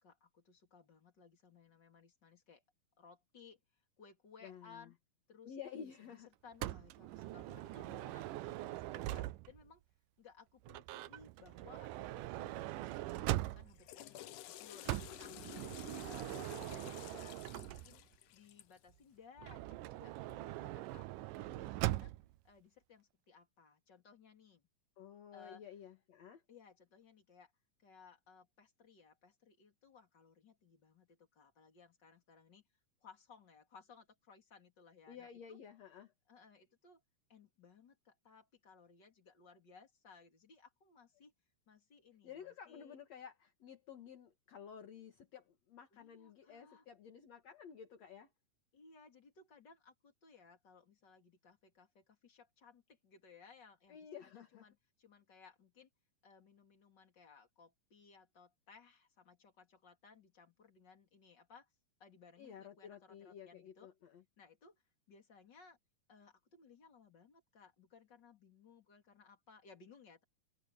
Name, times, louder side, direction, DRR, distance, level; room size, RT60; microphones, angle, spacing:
voice 1, 0.0-2.6 3.0-4.9 5.3-5.6 6.0-9.8 10.2-15.7 16.0-18.0 18.3-22.1 22.4-24.6 25.3-25.6 26.5-27.5 27.8-32.6 33.0-35.6 36.3-37.0 37.3-41.3 41.7-43.0 45.9-46.8 48.7-55.9 56.2-61.7 62.0-63.9 64.4-64.8 65.1-65.8 66.1-70.2, left 5 dB, 30° left, 3.7 m, -61 dB
voice 2, 4.4-4.9 5.4-6.3 25.0-26.4 35.1-36.1 42.2-48.3 53.9-54.7 62.4-64.2, left 8 dB, 55° left, 2.8 m, -52 dB
Motor vehicle (road) / Sliding door, 6.6-9.7 10.6-13.9 14.8-18.2 19.4-22.3, right 16 dB, 85° right, 2.3 m, -41 dB
Water / Toilet flush, 13.6-18.8, left 14 dB, 75° left, 2.2 m, -52 dB
open air
omnidirectional pair, 3.8 m